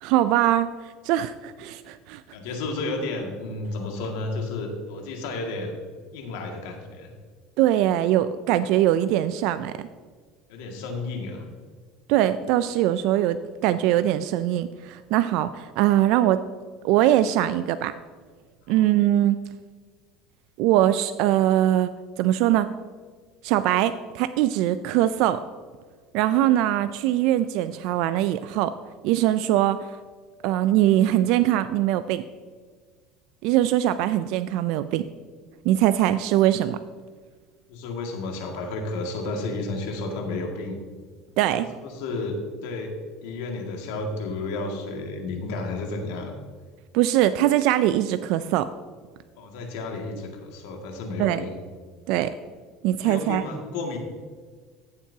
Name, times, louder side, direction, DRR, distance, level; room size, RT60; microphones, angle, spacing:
voice 1, 0.0-0.7 1.0-2.2 7.6-9.7 12.1-16.4 16.8-17.9 18.7-19.4 20.6-21.9 22.2-22.7 23.4-25.4 26.1-28.7 29.0-29.9 30.4-32.2 33.4-35.1 35.7-36.8 41.4-41.7 46.9-48.7 51.2-51.4 52.1-52.3 52.8-53.4, right 13 dB, 65° right, 12 dB, 0.3 m, -22 dB
voice 2, 2.3-5.8 6.1-7.1 10.5-11.5 18.7-18.9 37.7-40.8 41.8-42.4 42.6-42.9 43.2-46.3 49.3-51.6 53.0-54.0, left 3 dB, 80° left, 2 dB, 2.0 m, -32 dB
14.5 x 7.3 x 2.8 m, 1.5 s
supercardioid pair, 125°, 0 cm